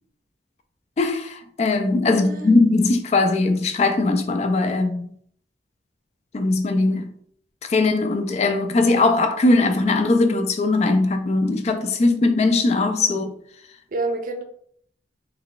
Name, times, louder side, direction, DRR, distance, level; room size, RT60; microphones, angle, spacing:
voice 1, 1.0-5.1 6.3-7.1 7.6-13.3, left 3 dB, 40° left, 0.3 m, -20 dB
voice 2, 2.1-2.6 13.9-14.4, right 2 dB, 50° right, 0.5 m, -28 dB
3.2 x 2.2 x 3.8 m
head